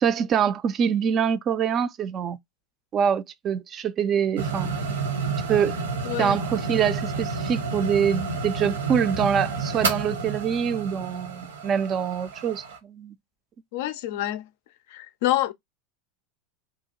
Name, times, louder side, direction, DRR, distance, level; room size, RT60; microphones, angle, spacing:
voice 1, 0.0-2.4 2.9-4.7 5.5-5.8 6.2-13.1, right 8 dB, 35° right, 0.3 m, -25 dB
sound 1, 4.4-12.8, right 4 dB, 70° right, 0.7 m, -30 dB
voice 2, 6.0-6.4 13.7-14.5 14.9-15.5, left 14 dB, 55° left, 0.3 m, -27 dB
2.8 x 2.2 x 2.7 m
figure-of-eight pair, 80°, 0 cm